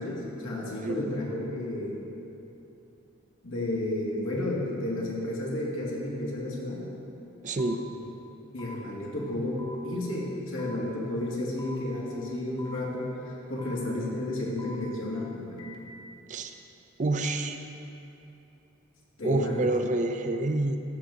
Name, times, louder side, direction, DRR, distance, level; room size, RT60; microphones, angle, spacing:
voice 1, 0.0-1.9 3.4-6.8 8.5-13.1 13.5-15.6 19.2-19.7, left 1 dB, 75° left, -5 dB, 2.2 m, -32 dB
voice 2, 7.4-7.8 16.3-16.5 17.0-17.6 19.2-20.8, right 2 dB, 40° right, 7 dB, 0.5 m, -28 dB
sound 1, 7.6-7.7 8.6-8.7 9.6-9.8 10.6-10.8 11.6-11.8 12.6-12.8 13.6-13.7 14.6-14.7 15.6-15.7, left 1 dB, 20° left, 1.1 m, -45 dB
13.0 x 6.9 x 3.8 m, 2.9 s
head